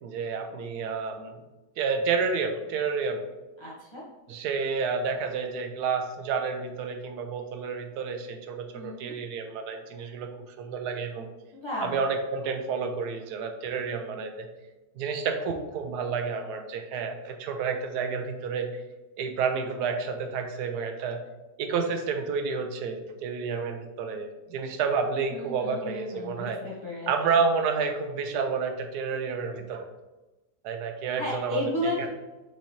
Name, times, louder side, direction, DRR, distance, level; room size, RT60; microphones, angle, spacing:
voice 1, 0.0-1.4 1.8-3.3 4.3-11.3 11.8-14.5 15.0-18.7 19.2-21.2 21.6-26.6 27.1-29.9 30.6-32.1, right 5 dB, 75° right, 5 dB, 1.1 m, -30 dB
voice 2, 3.6-4.0 8.7-9.1 11.5-11.9 25.3-27.1 31.2-32.1, left 1 dB, 30° left, -7 dB, 0.5 m, -33 dB
6.1 x 3.0 x 2.7 m, 1.1 s
omnidirectional pair, 1.8 m